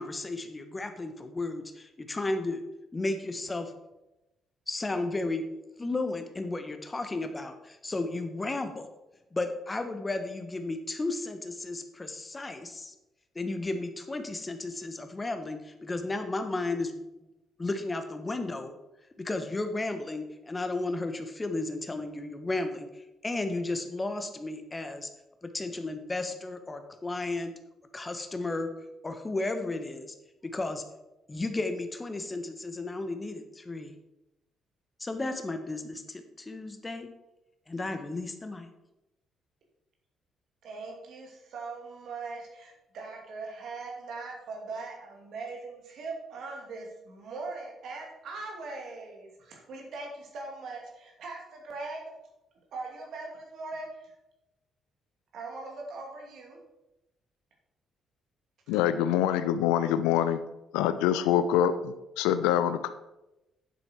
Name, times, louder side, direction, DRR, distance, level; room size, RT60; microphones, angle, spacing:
voice 1, 0.0-2.6 2.9-3.7 4.7-5.5 5.8-8.9 9.3-12.9 13.3-17.0 17.6-18.8 19.2-25.1 25.4-27.5 27.9-28.7 29.0-30.1 30.4-30.8 31.3-33.9 35.0-37.1 37.7-38.7, left 2 dB, 25° left, 8 dB, 1.3 m, -33 dB
voice 2, 40.6-52.1 52.7-54.1 55.3-56.6 61.0-61.3, right 3 dB, 55° right, 0 dB, 2.5 m, -40 dB
voice 3, 58.7-60.4 60.7-62.9, left 10 dB, 70° left, 12 dB, 0.5 m, -25 dB
9.6 x 7.8 x 4.6 m, 0.95 s
figure-of-eight pair, 45°, 0 cm